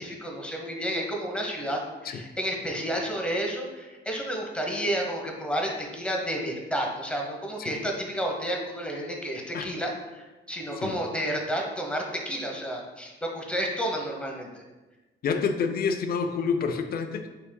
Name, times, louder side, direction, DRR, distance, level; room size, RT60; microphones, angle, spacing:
voice 1, 0.0-14.6, equal, 5° left, 0 dB, 0.9 m, -31 dB
voice 2, 15.2-17.3, left 5 dB, 50° left, 7 dB, 0.5 m, -28 dB
5.5 x 3.6 x 2.2 m, 1.2 s
cardioid pair, 90°, 20 cm